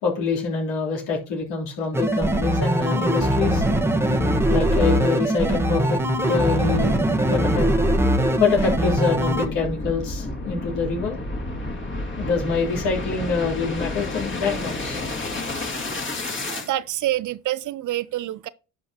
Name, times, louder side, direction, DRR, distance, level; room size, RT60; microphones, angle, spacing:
voice 1, 0.0-3.6 4.5-7.7 8.4-11.2 12.2-15.1, left 5 dB, 70° left, 3.3 m, -25 dB
sound 1, 1.9-9.5, right 1 dB, 5° right, 1.2 m, -21 dB
sound 2, 5.3-16.7, left 2 dB, 25° left, 2.1 m, -32 dB
voice 2, 16.3-18.5, right 14 dB, 45° right, 0.5 m, -27 dB
11.0 x 5.6 x 2.8 m
hypercardioid pair, 65°, 45 cm